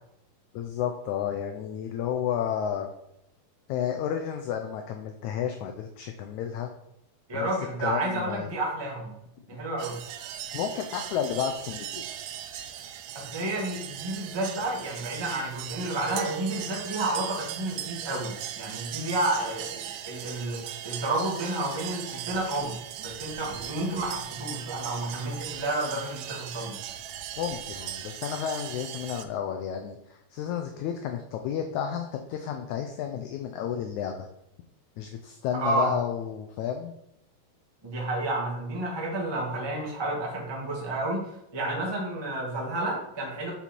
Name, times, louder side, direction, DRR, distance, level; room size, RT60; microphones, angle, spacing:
voice 1, 0.5-2.9 3.7-6.7 7.3-7.5 7.8-8.5 10.5-12.0 27.4-34.1 35.0-36.9, left 8 dB, 85° left, 4 dB, 1.6 m, -31 dB
voice 2, 7.3-9.1 9.5-10.0 13.1-22.7 23.0-26.8 35.6-35.9 37.8-41.2 41.5-43.5, right 2 dB, 25° right, -3 dB, 0.5 m, -30 dB
sound 1, 9.8-29.3, right 10 dB, 85° right, 2.4 m, -38 dB
6.9 x 5.5 x 4.4 m, 0.80 s
omnidirectional pair, 4.0 m